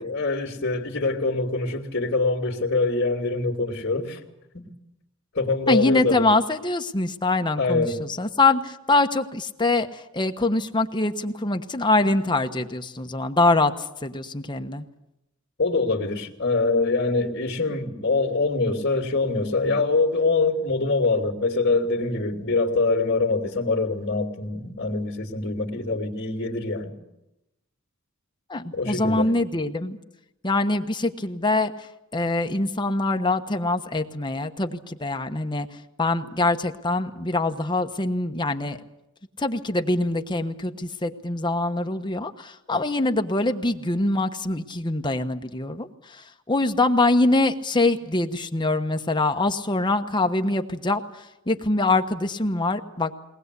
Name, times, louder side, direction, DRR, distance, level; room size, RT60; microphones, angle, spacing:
voice 1, 0.0-4.2 4.5-4.7 5.3-6.3 7.6-8.0 15.6-26.9 28.7-29.3, left 3 dB, 55° left, 2.6 m, -24 dB
voice 2, 5.7-14.8 28.5-30.0 30.4-31.7 32.1-35.7 36.0-38.8 39.4-51.0 51.5-53.1, left 2 dB, 20° left, 1.1 m, -24 dB
22.0 x 19.5 x 8.2 m
head